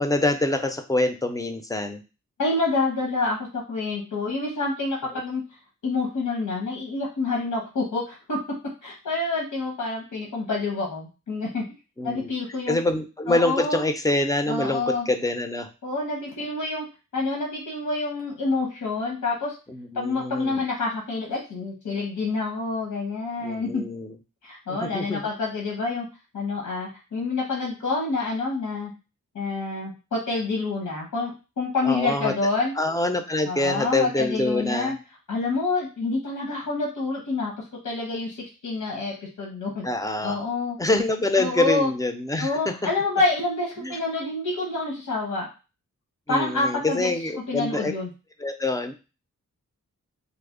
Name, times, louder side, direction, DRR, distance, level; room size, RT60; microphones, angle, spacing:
voice 1, 0.0-2.0 12.0-12.3 12.7-15.7 19.7-20.6 23.4-24.2 24.7-25.3 31.8-32.3 32.8-34.9 39.8-40.4 40.8-42.9 43.8-44.0 46.3-47.9 48.4-48.9, left 2 dB, 10° left, 6 dB, 0.3 m, -25 dB
voice 2, 2.4-5.4 5.8-8.4 8.8-11.6 12.0-12.8 13.3-13.8 14.5-15.1 15.8-16.8 17.1-19.6 19.9-23.8 24.4-26.1 26.3-28.9 29.3-32.7 33.5-35.0 35.3-37.5 37.8-39.9 40.2-40.8 41.4-41.9 42.4-45.5 46.3-47.1 47.5-48.1, left 3 dB, 90° left, -2 dB, 0.9 m, -27 dB
3.3 x 2.0 x 3.6 m, 0.31 s
wide cardioid pair, 130°, 31 cm